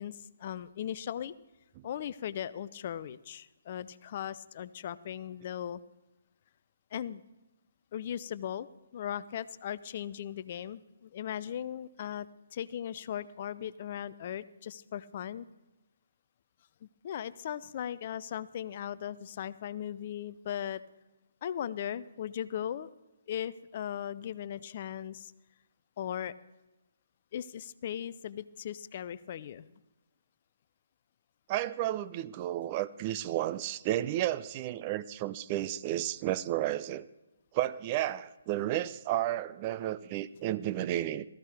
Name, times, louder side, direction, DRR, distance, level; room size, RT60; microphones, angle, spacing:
voice 1, 0.0-1.3 1.8-5.8 6.9-7.2 7.9-8.7 8.9-15.5 16.8-20.8 21.4-22.9 23.3-25.3 26.0-26.3 27.3-29.7, left 10 dB, 40° left, 17 dB, 0.5 m, -38 dB
voice 2, 31.5-37.1 37.5-41.3, right 13 dB, 30° right, 14 dB, 0.5 m, -32 dB
18.0 x 14.5 x 3.4 m, 1.0 s
figure-of-eight pair, 140°, 0 cm